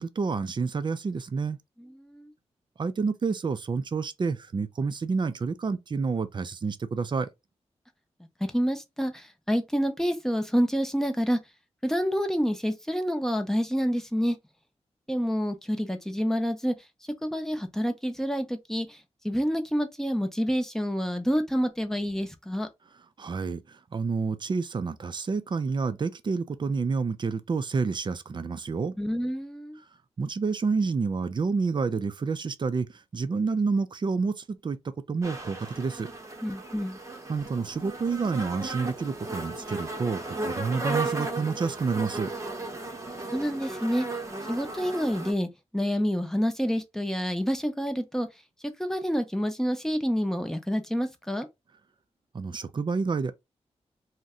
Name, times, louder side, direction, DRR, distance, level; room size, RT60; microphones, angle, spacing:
voice 1, 0.0-1.6 2.8-7.3 23.2-28.9 30.2-36.1 37.3-42.3 52.3-53.3, right 4 dB, 40° right, 0.4 m, -29 dB
voice 2, 2.0-2.3 8.5-11.4 11.8-14.4 15.1-16.7 17.2-19.0 19.2-22.7 29.0-29.8 36.4-37.0 43.2-44.0 44.5-48.3 48.8-51.5, equal, 5° left, 0.6 m, -28 dB
sound 1, 35.2-45.3, right 2 dB, 25° right, 0.8 m, -35 dB
2.6 x 2.1 x 3.6 m
wide cardioid pair, 80°, 11 cm